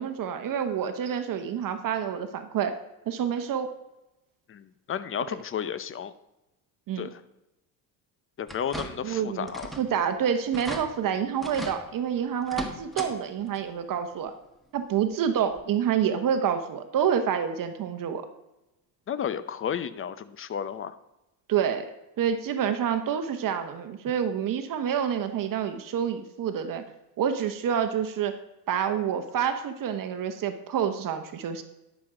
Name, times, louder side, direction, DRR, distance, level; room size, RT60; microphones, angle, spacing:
voice 1, 0.0-2.8 3.1-3.7 6.9-7.1 9.0-9.5 9.8-14.3 14.7-18.3 21.5-21.9 22.2-26.8 27.2-28.4 28.7-31.6, right 8 dB, 45° right, 8 dB, 1.0 m, -28 dB
voice 2, 4.5-6.1 7.0-7.2 8.4-9.8 19.1-21.0, left 8 dB, 30° left, 14 dB, 0.7 m, -32 dB
sound 1, 8.5-9.2 9.5-9.9 10.2-10.3 10.5-10.8 11.4-11.8 12.4-13.1 13.5-13.6 15.0-15.1 15.6-15.7, right 1 dB, ahead, 1.4 m, -37 dB
11.0 x 6.2 x 5.0 m, 0.95 s
supercardioid pair, 95°, 45 cm